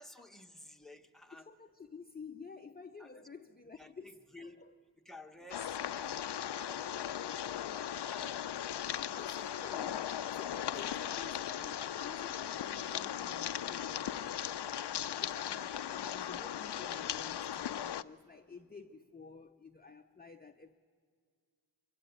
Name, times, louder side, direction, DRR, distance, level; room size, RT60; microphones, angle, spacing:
voice 1, 0.0-1.5 3.0-3.2 3.8-4.6 5.0-6.2 6.5-8.4 10.9-11.0, left 1 dB, ahead, 4 dB, 1.0 m, -53 dB
voice 2, 1.3-4.7 6.6-7.0 9.2-14.6 15.2-20.7, left 4 dB, 20° left, 6 dB, 0.6 m, -52 dB
sound 1, 5.5-18.0, left 10 dB, 65° left, 0.5 m, -38 dB
23.5 x 16.0 x 9.3 m, 2.1 s
wide cardioid pair, 90°, 44 cm